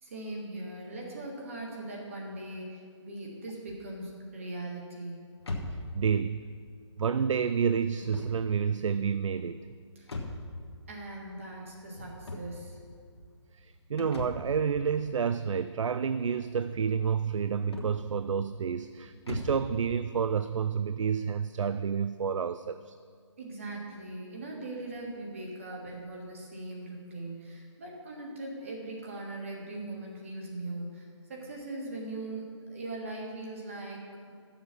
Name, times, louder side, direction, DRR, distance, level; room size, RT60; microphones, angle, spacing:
voice 1, 0.0-5.2 10.0-10.1 10.9-12.8 23.4-32.4 32.7-34.3, right 2 dB, 25° right, -1 dB, 1.4 m, -40 dB
sound 1, 5.4-19.7, left 2 dB, 55° left, 1.4 m, -43 dB
voice 2, 5.7-6.4 7.0-9.7 13.6-22.9, right 6 dB, 85° right, 12 dB, 0.4 m, -29 dB
11.0 x 7.2 x 5.9 m, 2.1 s
hypercardioid pair, 180°, 16 cm